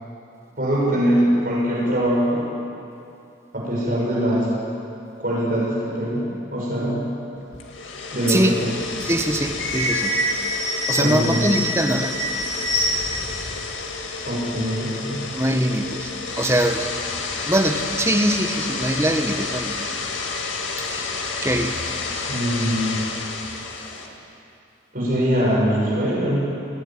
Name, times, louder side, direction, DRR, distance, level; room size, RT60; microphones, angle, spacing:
voice 1, 0.6-2.5 3.5-4.5 5.2-7.0 8.1-8.7 11.0-11.4 14.2-15.3 22.3-23.0 24.9-26.4, equal, 45° right, -5 dB, 6.5 m, -22 dB
sound 1, 7.5-24.1, left 4 dB, 90° left, 2.0 m, -30 dB
sound 2, 8.5-13.4 13.7-13.8 14.0-15.4 15.8-15.9 16.2-16.7 17.5-17.6 18.2-19.0 19.5-19.6 20.7-20.9 21.4-22.8 23.1-24.1, equal, 70° left, 5.2 m, -28 dB
voice 2, 9.0-10.2 10.9-12.1 15.3-16.1 16.4-16.9 17.5-19.8 20.8-21.1 21.4-21.8, right 1 dB, 15° right, 4 dB, 1.2 m, -22 dB
20.5 x 16.0 x 9.0 m, 2.6 s
head